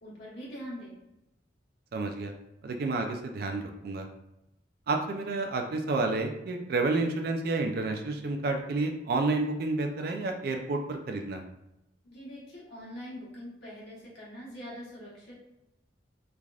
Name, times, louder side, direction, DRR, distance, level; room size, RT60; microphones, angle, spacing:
voice 1, 0.0-0.9 12.0-15.4, equal, 65° left, -6 dB, 1.2 m, -43 dB
voice 2, 1.9-2.3 2.6-4.1 4.9-11.4, right 3 dB, 55° right, 4 dB, 0.3 m, -30 dB
3.3 x 2.4 x 2.3 m, 0.89 s
head